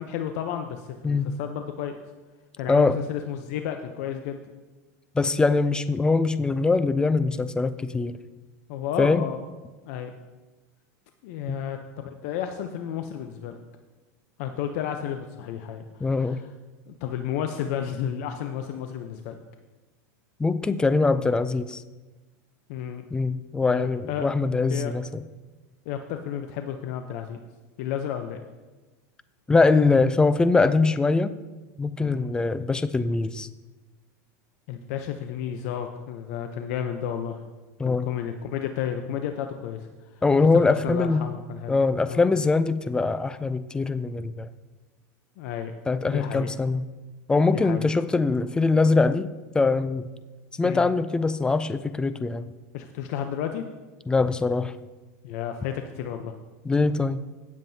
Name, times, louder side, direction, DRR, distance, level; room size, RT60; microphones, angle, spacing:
voice 1, 0.0-1.9 2.6-4.4 8.7-9.4 9.8-10.1 11.2-13.6 14.4-16.5 16.9-19.4 22.7-23.0 23.7-24.3 24.7-24.9 25.9-27.4 27.8-28.4 32.0-32.2 34.7-37.4 37.8-41.8 42.1-42.3 45.4-45.7 46.1-46.5 47.5-47.9 50.6-50.9 52.7-53.6 55.2-56.3, left 9 dB, 60° left, 6 dB, 0.7 m, -32 dB
voice 2, 2.7-3.0 5.1-8.2 9.0-9.2 11.5-11.6 16.0-16.4 20.4-21.8 23.1-25.2 29.5-31.3 31.8-33.5 37.8-38.1 40.2-41.2 41.7-44.5 45.9-46.9 47.3-49.3 49.5-50.1 50.6-52.5 54.1-54.7 56.7-57.2, left 3 dB, 10° left, 13 dB, 0.4 m, -22 dB
16.5 x 7.4 x 2.8 m, 1.2 s
supercardioid pair, 140°, 9 cm